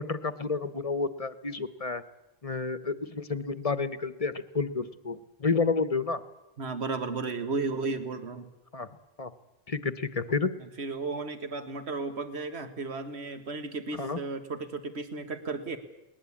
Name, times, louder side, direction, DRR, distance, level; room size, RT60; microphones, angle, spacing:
voice 1, 0.0-2.0 2.4-6.2 8.7-8.9 9.2-9.3 9.7-10.5 14.0-14.2, left 4 dB, 35° left, 13 dB, 1.0 m, -30 dB
voice 2, 6.6-8.5 10.6-15.8, right 3 dB, 80° right, 9 dB, 1.8 m, -34 dB
21.0 x 19.5 x 8.6 m, 0.94 s
omnidirectional pair, 1.1 m